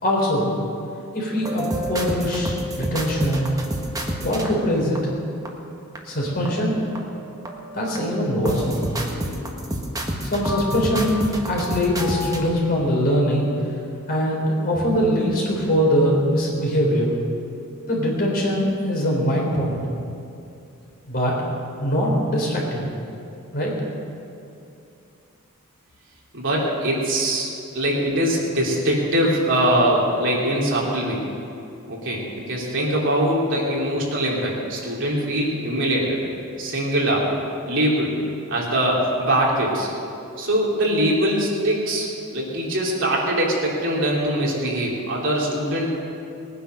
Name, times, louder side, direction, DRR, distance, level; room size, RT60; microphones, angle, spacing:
voice 1, 0.0-0.5 1.1-3.4 4.2-5.0 6.0-6.8 7.7-8.9 10.2-13.5 14.1-17.1 17.9-19.8 21.1-21.4 21.8-22.9 23.5-23.7, equal, 45° left, -2 dB, 4.0 m, -22 dB
sound 1, 1.4-5.5 6.0-6.1 6.5-7.2 7.5-12.5, equal, 15° right, 1.5 m, -29 dB
voice 2, 26.3-27.5 27.7-31.2 31.9-36.2 36.6-37.3 37.7-38.1 38.5-39.9 40.4-45.9, right 1 dB, 60° right, -3 dB, 3.2 m, -22 dB
20.5 x 10.0 x 6.5 m, 2.6 s
head